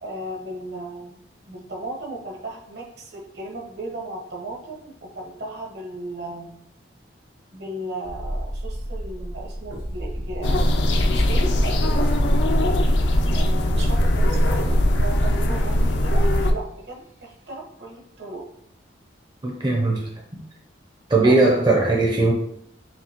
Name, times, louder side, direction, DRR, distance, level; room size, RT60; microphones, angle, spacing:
voice 1, 0.0-1.2 1.5-6.6 7.5-12.1 13.3-18.4 21.2-21.4, right 1 dB, 65° right, -1 dB, 1.2 m, -35 dB
sound 1, 8.0-14.9 15.2-15.3, equal, 90° right, 1.4 m, -35 dB
sound 2, 10.4-16.5, left 1 dB, 70° left, 0.4 m, -20 dB
voice 2, 19.4-20.4 21.1-22.3, right 2 dB, 25° right, -1 dB, 0.5 m, -19 dB
5.8 x 2.7 x 2.9 m, 0.71 s
head